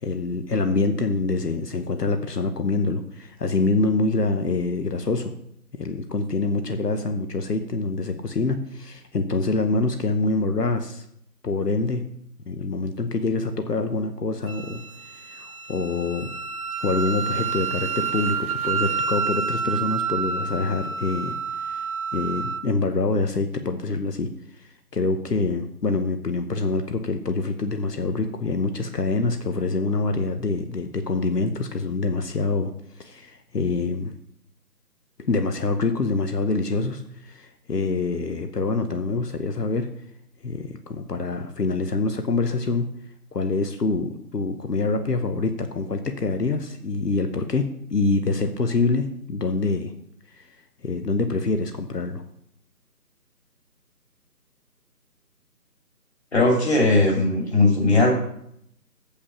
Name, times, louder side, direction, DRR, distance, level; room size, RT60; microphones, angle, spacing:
voice 1, 0.0-5.3 5.8-11.0 11.4-12.0 12.5-14.8 15.1-16.3 16.8-21.9 22.1-32.7 33.0-34.1 35.2-39.9 40.4-42.9 43.3-49.9 50.3-50.5 50.8-52.2, left 3 dB, 75° left, 8 dB, 1.1 m, -25 dB
Wind instrument woodwind instrument, 14.5-22.6, right 5 dB, 60° right, 0.7 m, -29 dB
voice 2, 56.3-58.1, left 2 dB, 40° left, 0 dB, 2.9 m, -18 dB
8.6 x 6.9 x 6.1 m, 0.72 s
figure-of-eight pair, 160°, 49 cm